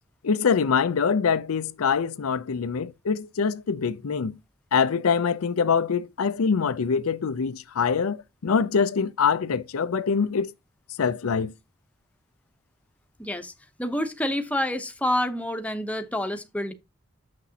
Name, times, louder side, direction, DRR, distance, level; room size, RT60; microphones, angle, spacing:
voice 1, 0.2-4.3 4.7-10.5 11.0-11.5, left 6 dB, 85° left, 0.5 m, -24 dB
voice 2, 13.2-13.5 13.8-16.7, left 1 dB, 5° left, 0.8 m, -28 dB
7.2 x 6.0 x 2.8 m
head